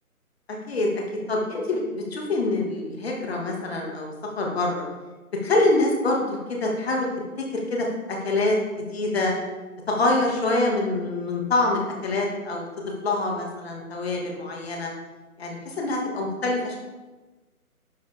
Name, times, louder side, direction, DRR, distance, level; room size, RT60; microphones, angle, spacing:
voice 1, 0.7-1.0 1.3-4.1 4.4-4.8 5.4-7.1 7.4-9.3 9.9-12.7 13.0-14.9 15.4-16.8, left 2 dB, 45° left, -1 dB, 2.5 m, -25 dB
11.5 x 8.0 x 3.8 m, 1.2 s
figure-of-eight pair, 155°, 44 cm